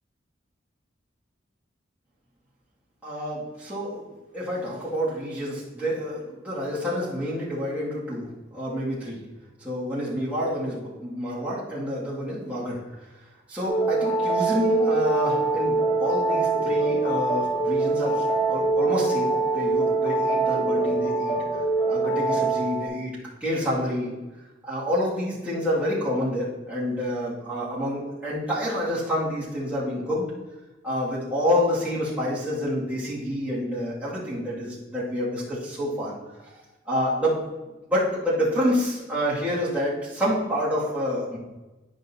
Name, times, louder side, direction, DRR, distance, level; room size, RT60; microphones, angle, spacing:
voice 1, 3.0-4.0 4.3-9.2 9.6-12.8 13.5-21.4 21.9-24.1 24.6-30.3 30.8-36.2 36.9-37.4 37.8-41.4, equal, 10° right, -10 dB, 2.3 m, -28 dB
sound 1, 13.7-22.9, right 3 dB, 65° left, 2.5 m, -24 dB
11.5 x 5.3 x 2.8 m, 1.1 s
head